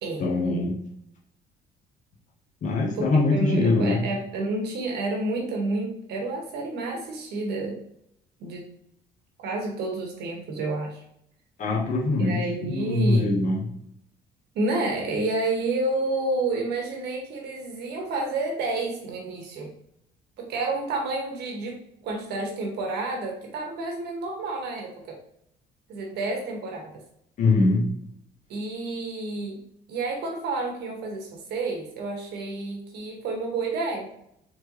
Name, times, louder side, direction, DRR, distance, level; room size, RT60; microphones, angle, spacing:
voice 1, 0.2-0.8 2.6-4.0 11.6-13.7 27.4-27.9, left 2 dB, 45° left, -1 dB, 1.1 m, -23 dB
voice 2, 2.9-7.8 8.4-8.7 9.4-11.0 12.2-13.4 14.5-19.7 20.4-25.2 25.9-26.9 28.5-29.6 29.9-34.1, right 2 dB, 75° right, 1 dB, 1.3 m, -30 dB
4.3 x 3.3 x 3.0 m, 0.74 s
cardioid pair, 110°, 17 cm